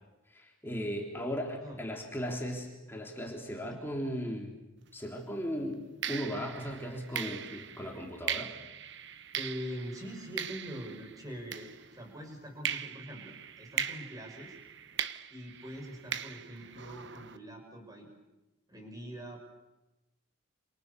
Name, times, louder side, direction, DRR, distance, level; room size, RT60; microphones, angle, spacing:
voice 1, 0.3-4.5 4.9-8.5, equal, 10° left, 0 dB, 3.4 m, -37 dB
sound 1, 4.9-5.1 6.0-12.2 12.6-17.4, right 8 dB, 55° right, 1.1 m, -40 dB
voice 2, 9.3-14.6 15.3-18.1 18.7-19.4, equal, 15° right, 3 dB, 6.1 m, -43 dB
29.0 x 27.5 x 6.9 m, 0.99 s
head